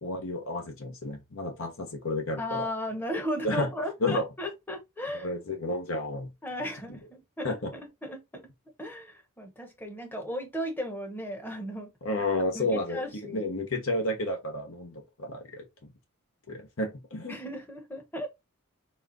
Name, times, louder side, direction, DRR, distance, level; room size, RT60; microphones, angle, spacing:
voice 1, 0.0-2.7 3.4-3.7 4.0-4.3 5.1-6.3 7.4-7.7 12.0-15.9 16.5-17.4, left 1 dB, 65° left, 1.1 m, -31 dB
voice 2, 2.4-5.3 6.4-7.6 8.0-8.4 8.8-11.9 12.5-13.4 17.3-18.3, equal, 10° left, 1.0 m, -35 dB
4.3 x 3.6 x 2.5 m
head